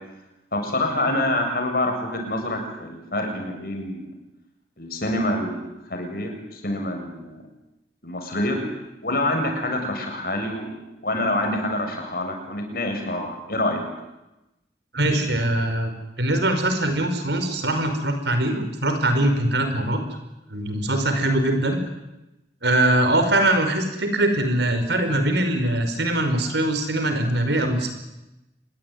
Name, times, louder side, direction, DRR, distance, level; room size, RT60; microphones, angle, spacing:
voice 1, 0.5-4.1 4.8-7.4 8.0-8.6 9.0-10.7 11.0-13.8, left 1 dB, 55° left, 3 dB, 7.3 m, -26 dB
voice 2, 14.9-20.0 20.5-21.8 22.6-27.9, right 1 dB, 75° right, 7 dB, 5.3 m, -22 dB
27.0 x 21.5 x 9.5 m, 0.96 s
head